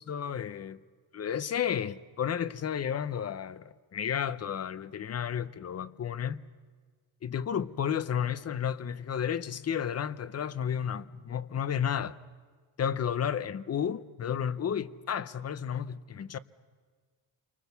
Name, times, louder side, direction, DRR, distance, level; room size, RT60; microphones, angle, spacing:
voice 1, 0.1-0.8 1.1-6.4 7.2-12.2 12.8-16.4, left 8 dB, 35° left, 0.6 m, -32 dB
28.5 x 24.5 x 6.8 m
wide cardioid pair, 170°, 47 cm